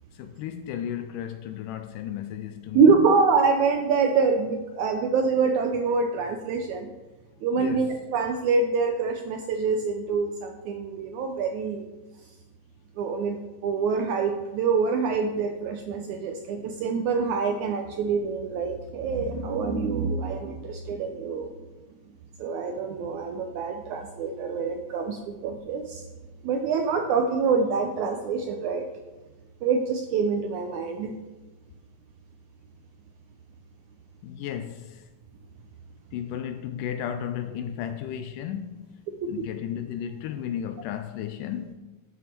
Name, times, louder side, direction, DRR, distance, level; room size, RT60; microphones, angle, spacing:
voice 1, 0.1-3.1 7.5-7.9 34.2-35.1 36.1-41.7, left 9 dB, 80° left, 1.9 m, -34 dB
voice 2, 2.7-6.9 7.4-11.8 13.0-21.5 22.4-26.1 26.4-28.9 29.6-31.2 39.2-39.3, right 5 dB, 80° right, 1.7 m, -25 dB
12.5 x 6.2 x 4.4 m
omnidirectional pair, 4.1 m